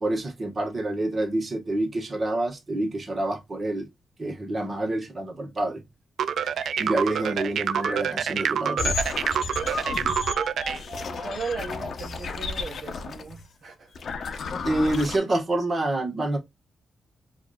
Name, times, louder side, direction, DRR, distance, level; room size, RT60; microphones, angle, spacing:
voice 1, 0.0-3.9 4.2-5.8 6.8-9.0 14.6-16.4, right 1 dB, 35° right, 1.3 m, -27 dB
sound 1, 6.2-10.8, right 8 dB, 75° right, 0.3 m, -27 dB
sound 2, 6.3-9.2 9.7-11.4, right 1 dB, 15° right, 1.3 m, -37 dB
weirdest sounds, 8.8-13.4 13.9-15.2, left 4 dB, 55° left, 0.7 m, -33 dB
voice 2, 11.1-13.9, right 4 dB, 55° right, 0.8 m, -37 dB
4.7 x 2.6 x 2.3 m
cardioid pair, 115°, 0 cm